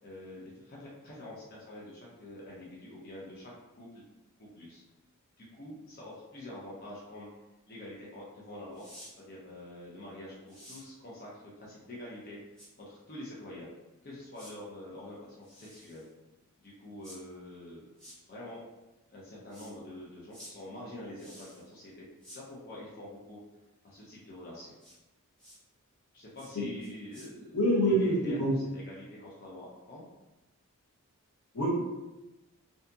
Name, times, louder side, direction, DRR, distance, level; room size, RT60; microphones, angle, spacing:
voice 1, 0.0-4.0 4.4-4.8 5.4-7.3 7.7-8.9 9.2-12.4 12.8-13.7 14.0-16.0 16.6-17.8 18.3-18.6 19.1-23.4 23.8-24.7 26.1-30.0, left 1 dB, 40° left, -5 dB, 0.5 m, -46 dB
sound 1, 8.7-9.1 10.5-10.8 12.6-12.7 14.3-14.5 15.4-16.1 17.0-17.2 18.0-18.2 19.5-19.7 20.3-20.5 21.2-21.6 22.2-22.4 24.8-25.0 25.4-25.6 26.4-26.5 26.8-27.3, equal, 5° left, 0.8 m, -51 dB
voice 2, 27.5-28.5 31.5-31.7, equal, 80° left, -4 dB, 0.8 m, -25 dB
2.6 x 2.6 x 2.3 m, 1.0 s
head